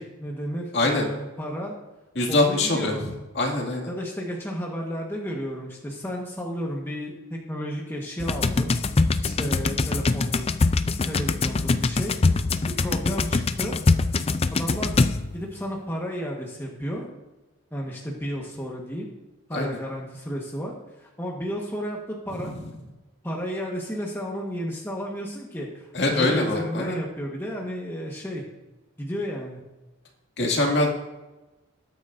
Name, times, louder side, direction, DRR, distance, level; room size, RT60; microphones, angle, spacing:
voice 1, 0.0-1.7 2.3-3.0 3.9-8.7 9.2-10.5 11.1-12.2 12.7-13.8 14.5-15.0 15.3-17.1 17.7-19.1 19.5-20.7 21.0-22.5 23.2-28.4 29.0-29.6, equal, 10° left, -2 dB, 1.4 m, -32 dB
voice 2, 0.7-1.1 2.2-3.1 3.3-3.9 19.5-19.7 25.9-27.0 30.4-30.9, left 2 dB, 55° left, 0 dB, 2.4 m, -23 dB
sound 1, 8.2-15.5, left 3 dB, 30° left, 0.4 m, -23 dB
20.0 x 9.4 x 2.7 m, 1.1 s
head